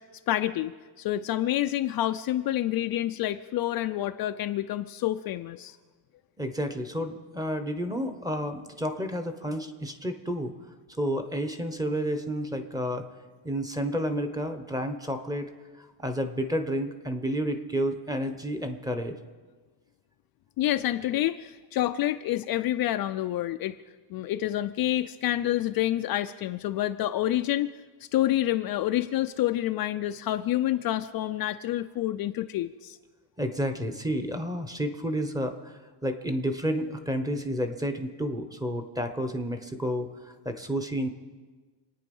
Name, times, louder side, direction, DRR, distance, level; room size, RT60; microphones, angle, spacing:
voice 1, 0.3-0.7 1.0-5.8 20.6-23.8 24.1-27.7 28.1-33.0, left 13 dB, 50° left, 8 dB, 0.5 m, -28 dB
voice 2, 6.4-10.5 11.0-13.1 13.4-15.5 15.8-19.2 33.4-41.1, equal, 10° right, 7 dB, 1.0 m, -30 dB
27.0 x 9.3 x 5.4 m, 1.4 s
cardioid pair, 155°, 48 cm